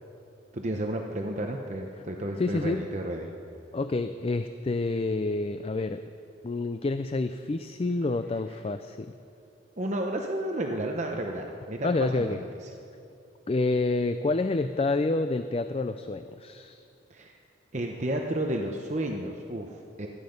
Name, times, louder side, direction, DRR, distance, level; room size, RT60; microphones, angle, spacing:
voice 1, 0.5-3.3 9.8-12.4 17.1-17.3 17.7-20.1, right 1 dB, 40° right, 1 dB, 0.9 m, -32 dB
voice 2, 2.4-2.8 3.7-6.0 6.4-9.1 11.8-12.4 13.5-16.8, left 3 dB, 30° left, 9 dB, 0.4 m, -28 dB
25.0 x 9.9 x 5.3 m, 2.6 s
head